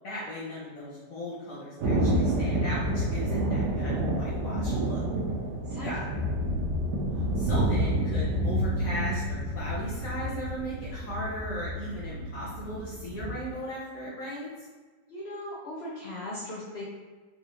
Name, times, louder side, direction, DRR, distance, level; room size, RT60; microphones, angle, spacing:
voice 1, 0.0-5.0 5.8-6.1 7.4-14.7, equal, 60° left, -7 dB, 1.0 m, -37 dB
Thunder, 1.8-13.3, right 1 dB, 70° right, 1.2 m, -29 dB
voice 2, 15.1-16.8, left 1 dB, 90° left, -6 dB, 0.5 m, -38 dB
4.2 x 2.4 x 2.9 m, 1.4 s
omnidirectional pair, 1.9 m